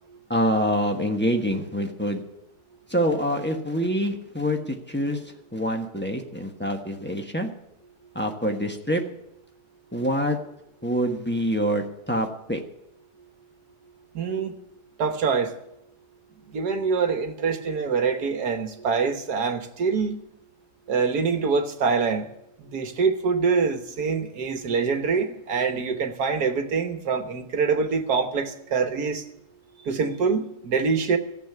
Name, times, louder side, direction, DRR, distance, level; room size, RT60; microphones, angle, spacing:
voice 1, 0.3-2.2 2.9-5.2 5.5-7.5 8.1-9.0 9.9-10.4 10.8-12.6, equal, 5° left, 2 dB, 1.1 m, -25 dB
voice 2, 14.2-14.5 15.0-15.5 16.5-20.2 20.9-22.3 22.6-29.2 29.9-31.2, right 5 dB, 70° right, 7 dB, 1.8 m, -25 dB
14.0 x 7.6 x 9.4 m, 0.83 s
omnidirectional pair, 1.8 m